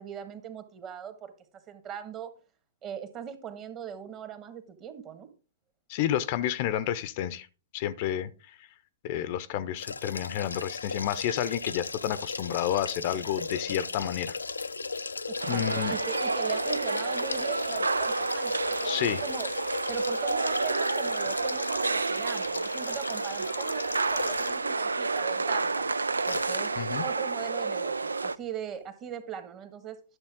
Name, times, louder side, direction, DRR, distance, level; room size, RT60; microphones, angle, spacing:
voice 1, 0.0-1.3 1.7-2.3 2.8-5.3 15.3-19.5 19.9-25.9 26.2-26.7 27.0-30.0, right 8 dB, 30° right, 1.6 m, -40 dB
voice 2, 5.9-7.5 7.7-8.3 9.0-14.4 15.4-15.9 18.8-19.2 26.8-27.1, left 11 dB, 45° left, 0.6 m, -30 dB
sound 1, 9.8-24.7 25.2-25.3 26.3-26.7 27.0-27.1, left 4 dB, 90° left, 0.5 m, -36 dB
sound 2, 15.4-28.4, right 3 dB, 90° right, 0.3 m, -30 dB
11.0 x 6.6 x 3.7 m
hypercardioid pair, 115°, 0 cm